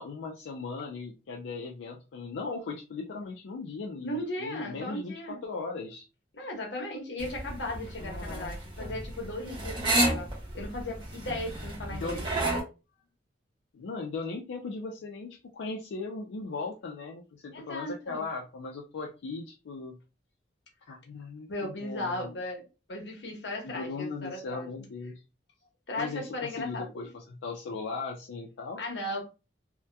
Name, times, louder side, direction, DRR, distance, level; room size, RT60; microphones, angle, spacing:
voice 1, 0.0-6.1 8.0-9.0 11.9-12.2 13.7-20.0 20.9-22.4 23.6-25.1 26.0-28.8, left 4 dB, 85° left, 0.4 m, -38 dB
voice 2, 4.0-5.4 6.3-10.3 10.5-12.3 17.5-18.3 21.5-24.9 25.9-27.1 28.8-29.2, left 1 dB, 65° left, 0.9 m, -36 dB
sound 1, 7.2-12.6, right 1 dB, 25° right, 0.7 m, -30 dB
2.7 x 2.1 x 2.2 m
head